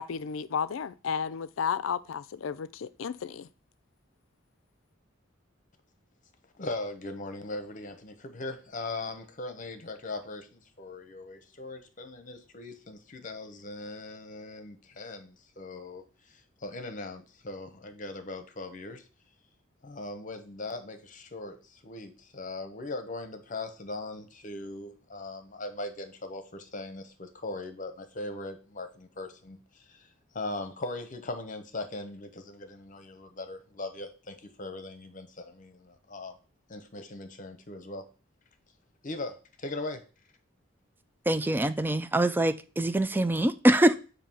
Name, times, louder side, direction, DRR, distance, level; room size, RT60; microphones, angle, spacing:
voice 1, 0.0-3.5, left 6 dB, 80° left, 0.4 m, -33 dB
voice 2, 6.6-19.0 19.8-30.1 30.3-36.3 36.7-38.0 39.0-40.0, left 2 dB, 40° left, 0.9 m, -39 dB
voice 3, 41.3-44.0, right 1 dB, 10° right, 0.3 m, -24 dB
7.2 x 2.8 x 5.5 m
head